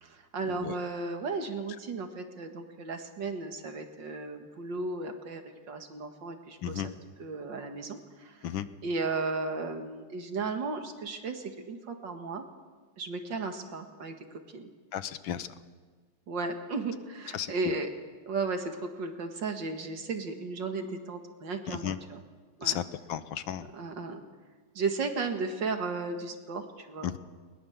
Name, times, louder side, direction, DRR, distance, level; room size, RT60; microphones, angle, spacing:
voice 1, 0.0-5.4 5.7-12.4 13.0-14.7 16.3-17.9 18.3-22.2 22.6-22.8 23.7-24.2 24.8-27.1, right 3 dB, 65° right, 5 dB, 2.4 m, -35 dB
voice 2, 14.9-15.5 17.3-17.5 21.7-22.0 22.6-22.8 23.1-23.7 27.0-27.2, left 10 dB, 75° left, 13 dB, 1.6 m, -33 dB
21.5 x 20.5 x 7.3 m, 1.5 s
omnidirectional pair, 2.2 m